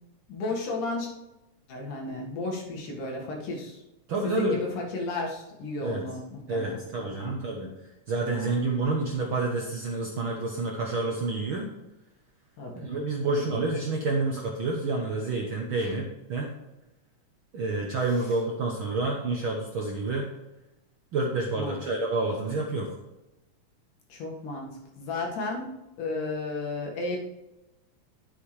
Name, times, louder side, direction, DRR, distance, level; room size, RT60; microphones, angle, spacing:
voice 1, 0.3-1.1 1.7-3.8 4.2-6.8 7.2-7.3 8.3-8.5 12.6-13.0 13.2-13.6 15.8-16.0 21.5-21.8 24.1-24.7 25.0-27.2, left 2 dB, 80° left, -1 dB, 3.4 m, -33 dB
voice 2, 4.1-4.6 5.8-6.0 6.5-7.7 8.1-11.7 12.7-16.5 17.5-20.3 21.1-23.0, right 3 dB, 60° right, 0 dB, 1.4 m, -29 dB
9.9 x 8.4 x 3.3 m, 0.97 s
omnidirectional pair, 3.5 m